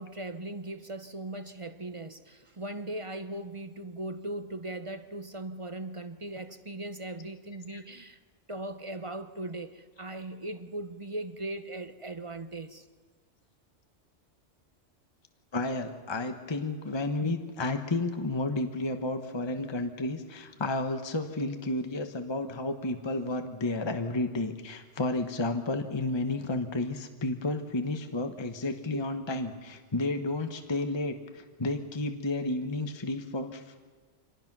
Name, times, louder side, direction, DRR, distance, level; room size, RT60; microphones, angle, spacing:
voice 1, 0.0-8.2 8.5-12.9, right 1 dB, 30° right, 10 dB, 0.8 m, -39 dB
voice 2, 15.5-33.8, left 2 dB, 25° left, 6 dB, 1.0 m, -32 dB
26.0 x 18.5 x 6.1 m, 1.5 s
omnidirectional pair, 1.2 m